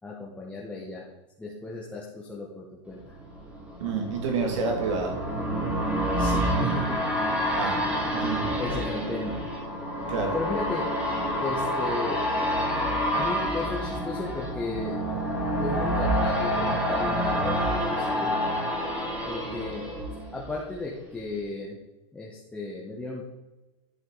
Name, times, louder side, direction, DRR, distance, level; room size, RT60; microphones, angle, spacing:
voice 1, 0.0-1.0 1.4-3.1 6.2-7.0 8.6-9.4 10.3-10.9 11.4-12.2 13.1-15.0 15.5-18.3 19.3-19.9 20.3-21.8 22.1-23.2, left 3 dB, 5° left, -4 dB, 1.1 m, -35 dB
sound 1, 3.0-20.8 21.2-21.3, equal, 10° right, 2.9 m, -28 dB
voice 2, 3.8-5.2 7.6-7.8 8.1-8.4 10.1-10.4, right 4 dB, 75° right, 2 dB, 2.5 m, -28 dB
11.0 x 5.7 x 3.9 m, 1.1 s
supercardioid pair, 140°, 16 cm